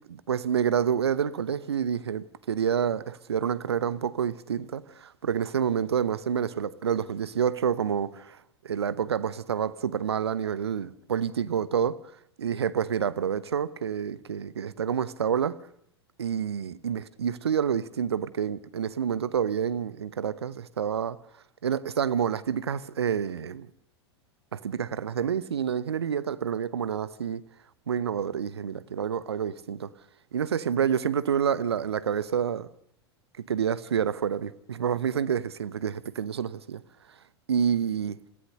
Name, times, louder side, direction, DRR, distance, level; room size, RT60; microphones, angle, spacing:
voice 1, 0.1-8.4 8.6-12.0 12.4-15.6 16.2-21.2 21.6-23.7 24.5-27.4 27.9-29.9 30.3-32.7 33.5-36.8 37.5-38.2, right 8 dB, 75° right, 0.9 m, -28 dB
27.0 x 16.0 x 6.7 m
figure-of-eight pair, 90°, 14 cm